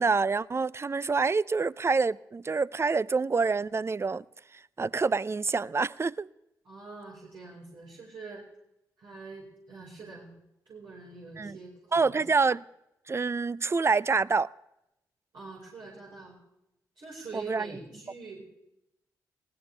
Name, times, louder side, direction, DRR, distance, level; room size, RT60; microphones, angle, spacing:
voice 1, 0.0-4.2 4.8-6.3 11.4-11.6 11.9-12.6 13.1-14.5 17.3-17.7, right 4 dB, 30° right, 0.5 m, -27 dB
voice 2, 6.6-8.4 9.0-10.3 10.6-12.2 15.3-16.4 17.0-18.4, right 3 dB, 70° right, 4.6 m, -45 dB
20.0 x 17.0 x 3.4 m
supercardioid pair, 45°, 8 cm